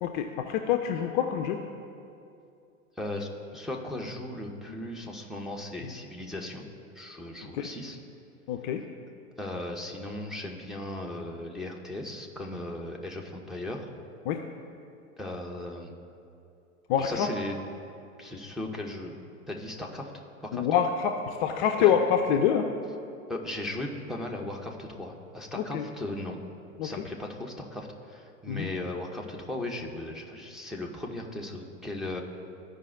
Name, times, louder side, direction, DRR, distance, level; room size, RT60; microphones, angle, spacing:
voice 1, 0.0-1.6 7.5-7.7 8.5-8.8 14.3-14.4 16.9-17.3 20.5-22.7 25.6-25.8 26.8-26.9 28.5-28.7, left 8 dB, 40° left, 5 dB, 0.5 m, -26 dB
voice 2, 3.0-6.6 6.9-8.0 9.4-13.9 15.2-15.9 17.0-17.6 18.2-19.2 19.5-20.7 21.8-21.9 23.3-26.4 26.8-32.2, left 1 dB, ahead, -1 dB, 0.7 m, -37 dB
14.0 x 5.1 x 2.5 m, 2.5 s
figure-of-eight pair, 90°, 41 cm